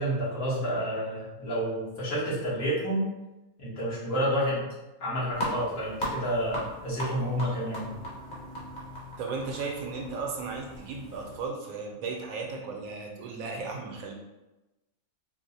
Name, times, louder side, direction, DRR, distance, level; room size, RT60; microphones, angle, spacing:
voice 1, 0.0-3.1 3.6-4.7 5.0-7.9, equal, 65° left, -8 dB, 1.6 m, -29 dB
sound 1, 5.3-11.4, equal, 40° left, 1.0 m, -38 dB
voice 2, 9.2-14.1, right 4 dB, 75° right, 1 dB, 1.0 m, -35 dB
4.3 x 2.0 x 2.7 m, 1.0 s
omnidirectional pair, 1.6 m